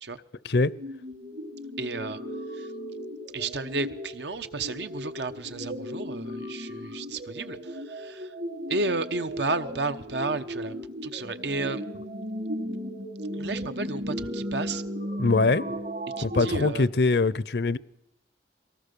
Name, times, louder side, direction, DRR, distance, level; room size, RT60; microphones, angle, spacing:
sound 1, 0.7-16.7, equal, 55° right, 1.6 m, -36 dB
voice 1, 1.8-2.2 2.5-2.7 3.3-8.3 8.7-10.8 11.0-11.8 13.4-14.8 16.2-16.9, right 3 dB, 80° right, 1.1 m, -32 dB
voice 2, 15.2-15.6 16.2-17.8, left 3 dB, 70° left, 0.7 m, -23 dB
23.0 x 18.0 x 6.9 m
head